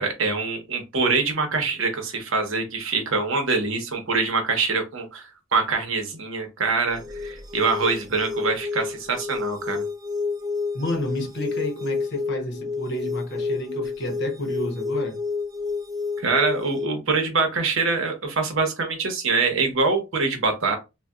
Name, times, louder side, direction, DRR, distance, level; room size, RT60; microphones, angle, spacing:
voice 1, 0.0-9.8 16.2-20.8, right 4 dB, 60° right, 0.9 m, -24 dB
sound 1, 6.9-16.9, left 4 dB, 20° right, 0.5 m, -30 dB
voice 2, 10.7-15.2, left 1 dB, 50° left, 0.8 m, -30 dB
3.9 x 2.2 x 2.3 m
head